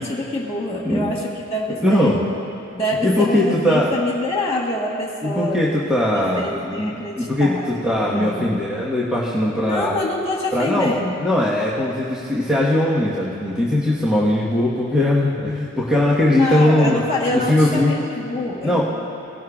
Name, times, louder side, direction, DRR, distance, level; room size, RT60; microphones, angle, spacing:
voice 1, 0.0-2.3 2.7-5.6 6.1-7.7 8.0-8.6 9.6-11.2 16.3-18.8, left 1 dB, 20° left, -6 dB, 1.3 m, -26 dB
voice 2, 1.8-2.2 3.0-3.9 5.2-9.9 10.5-17.0 17.3-17.9 18.6-18.8, left 1 dB, ahead, -7 dB, 1.3 m, -20 dB
19.0 x 12.0 x 2.4 m, 3.0 s
wide cardioid pair, 115°, 30 cm